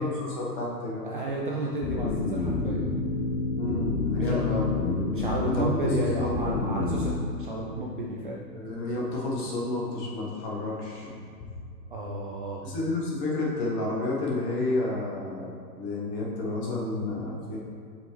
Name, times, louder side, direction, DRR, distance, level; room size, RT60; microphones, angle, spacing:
voice 1, 0.0-1.1 3.6-4.7 5.5-5.9 6.2-6.4 8.5-11.1 12.6-17.6, left 2 dB, 20° left, -3 dB, 0.8 m, -30 dB
voice 2, 1.0-2.8 4.2-4.4 5.1-8.4 11.9-12.6, right 2 dB, 35° right, -3 dB, 0.4 m, -32 dB
sound 1, 1.8-7.1, left 3 dB, 55° left, 0.8 m, -28 dB
7.2 x 5.7 x 3.1 m, 2.2 s
hypercardioid pair, 155°, 50 cm